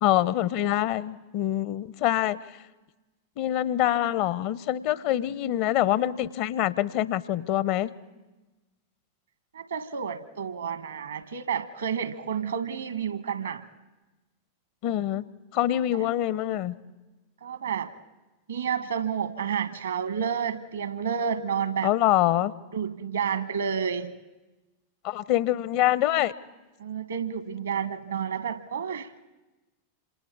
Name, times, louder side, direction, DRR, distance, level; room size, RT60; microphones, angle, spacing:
voice 1, 0.0-2.6 3.4-7.9 14.8-15.2 15.5-16.8 21.8-22.5 25.0-26.3, left 13 dB, 45° left, 19 dB, 0.7 m, -25 dB
voice 2, 9.5-13.7 17.4-17.9 18.5-21.9 22.7-24.2 26.8-29.1, right 7 dB, 70° right, 12 dB, 1.3 m, -30 dB
27.5 x 26.5 x 4.8 m, 1.1 s
figure-of-eight pair, 90°, 0 cm